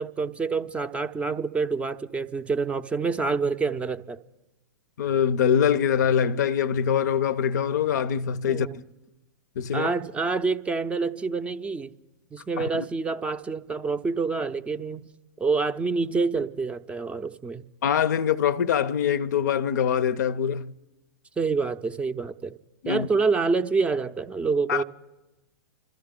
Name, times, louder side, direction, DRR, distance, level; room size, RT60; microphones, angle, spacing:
voice 1, 0.0-4.2 8.5-8.8 9.7-11.9 12.3-15.1 15.4-17.6 21.4-22.6 22.9-24.8, right 4 dB, 10° right, 0.5 m, -27 dB
voice 2, 5.0-8.8 9.6-9.9 12.6-12.9 17.8-20.7 22.8-23.1 24.7-24.8, left 8 dB, 55° left, 0.5 m, -24 dB
28.5 x 13.0 x 3.7 m
figure-of-eight pair, 105°, 11 cm